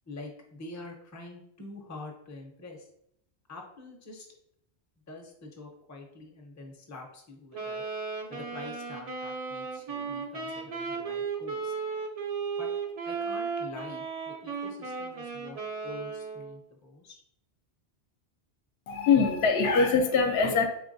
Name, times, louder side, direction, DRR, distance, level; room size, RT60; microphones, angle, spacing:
voice 1, 0.1-2.9 3.5-4.3 5.1-7.8 8.3-11.7 12.6-12.7 13.0-17.2, left 2 dB, 20° left, 1 dB, 0.5 m, -46 dB
Wind instrument woodwind instrument, 7.5-16.6, right 5 dB, 45° right, 0.5 m, -35 dB
voice 2, 18.9-20.7, left 5 dB, 70° left, 5 dB, 0.8 m, -23 dB
3.8 x 3.4 x 2.6 m, 0.74 s
omnidirectional pair, 1.1 m